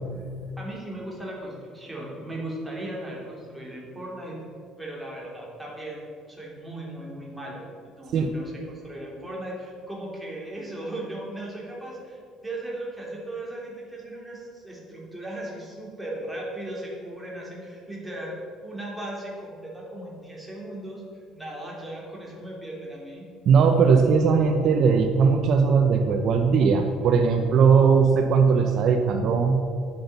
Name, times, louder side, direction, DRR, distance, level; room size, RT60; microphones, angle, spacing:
voice 1, 0.6-4.4 4.8-18.3 18.6-21.0 21.3-23.2, right 1 dB, 5° right, -4 dB, 3.3 m, -37 dB
voice 2, 23.5-29.6, right 5 dB, 55° right, 5 dB, 0.8 m, -19 dB
9.6 x 8.5 x 6.9 m, 2.4 s
cardioid pair, 130°, 0 cm